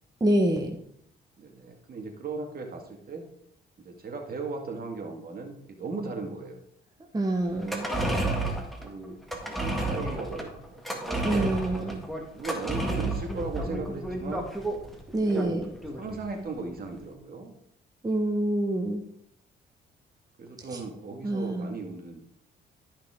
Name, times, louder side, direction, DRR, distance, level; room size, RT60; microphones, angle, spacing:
voice 1, 0.2-0.8 7.1-7.9 11.2-12.1 15.1-15.6 18.0-19.0 20.7-20.8 21.2-21.7, right 1 dB, 20° right, 2 dB, 1.2 m, -26 dB
voice 2, 1.4-3.2 3.8-6.6 8.8-9.2 9.5-11.6 12.3-14.5 15.3-15.6 15.9-17.5 20.4-22.2, right 3 dB, 50° right, 3 dB, 2.1 m, -37 dB
sound 1, 7.5-16.2 16.5-16.6, right 2 dB, ahead, 1.8 m, -31 dB
12.5 x 5.6 x 3.7 m, 0.70 s
cardioid pair, 90°, 20 cm